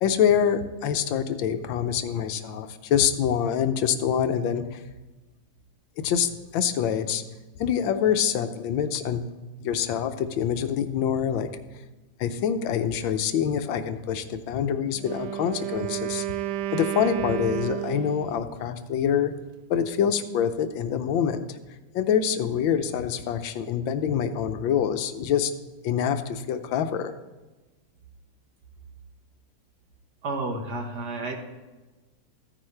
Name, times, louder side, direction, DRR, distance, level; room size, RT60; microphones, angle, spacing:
voice 1, 0.0-4.8 6.0-7.2 7.6-9.2 9.6-11.5 12.2-16.4 16.7-19.3 19.7-21.6 21.9-25.5 25.8-27.1, left 8 dB, 70° left, 10 dB, 1.4 m, -25 dB
Wind instrument woodwind instrument, 14.9-18.4, right 14 dB, 90° right, 0.9 m, -31 dB
voice 2, 30.2-31.4, right 2 dB, 50° right, 3 dB, 1.8 m, -31 dB
14.5 x 10.0 x 3.3 m, 1.2 s
omnidirectional pair, 2.4 m